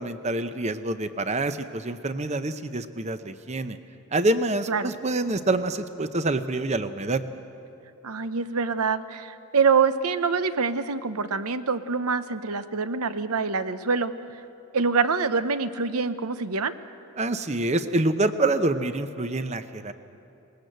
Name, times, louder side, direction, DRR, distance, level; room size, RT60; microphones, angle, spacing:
voice 1, 0.0-3.8 4.1-7.2 17.2-19.9, right 2 dB, 30° right, 10 dB, 0.7 m, -26 dB
voice 2, 8.0-14.1 14.7-16.7, right 5 dB, 85° right, 12 dB, 0.8 m, -25 dB
20.0 x 19.5 x 8.0 m, 2.8 s
head